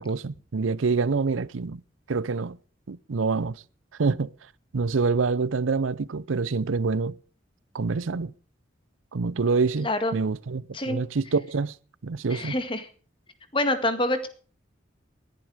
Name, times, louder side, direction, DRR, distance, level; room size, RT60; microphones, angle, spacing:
voice 1, 0.0-1.8 2.1-2.6 2.9-3.6 4.0-4.3 4.7-7.2 7.7-8.3 9.1-11.7 12.0-12.5, right 4 dB, 90° right, 0.6 m, -26 dB
voice 2, 9.8-10.2 10.7-11.0 12.3-12.9 13.5-14.3, left 1 dB, 25° left, 2.0 m, -26 dB
20.0 x 10.5 x 4.9 m
head